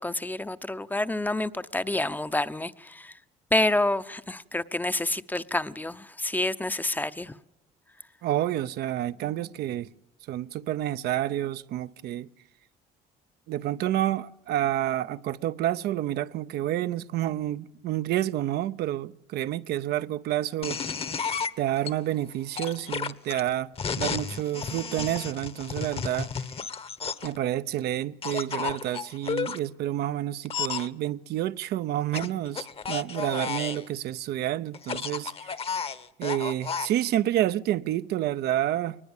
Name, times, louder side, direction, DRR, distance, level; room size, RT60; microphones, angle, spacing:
voice 1, 0.0-3.1 3.5-7.3, left 2 dB, 10° left, 0.7 m, -28 dB
voice 2, 8.2-9.9 10.3-12.3 13.5-20.8 21.6-23.7 24.0-26.3 27.2-35.5 36.2-39.0, right 13 dB, 70° right, 0.7 m, -29 dB
sound 1, 20.6-21.9 22.6-27.4 28.2-29.6 30.5-30.9 32.1-33.9 34.7-36.9, left 6 dB, 35° left, 1.1 m, -32 dB
22.0 x 19.5 x 7.2 m
cardioid pair, 110°, 17 cm